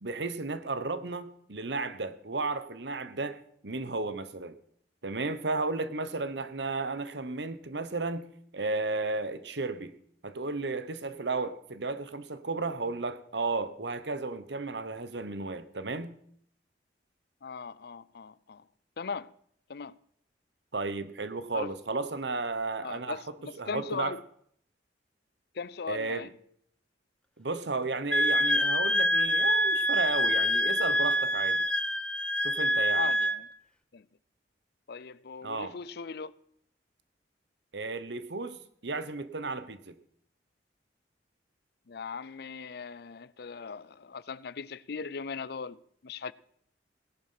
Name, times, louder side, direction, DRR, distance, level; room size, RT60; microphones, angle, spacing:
voice 1, 0.0-3.4 3.6-4.5 5.0-9.9 10.2-16.2 20.7-23.2 23.6-24.2 25.9-26.3 27.4-31.6 32.4-33.1 35.4-35.7 37.7-38.6 38.8-40.0, right 3 dB, 65° right, 1.2 m, -33 dB
voice 2, 17.4-18.6 19.0-19.3 19.7-20.0 21.5-21.7 22.8-24.2 25.6-26.3 32.9-33.5 33.9-34.0 34.9-36.3 41.9-46.3, left 5 dB, 60° left, 0.5 m, -39 dB
Wind instrument woodwind instrument, 28.1-33.4, equal, 5° left, 0.8 m, -26 dB
18.0 x 11.0 x 5.8 m
head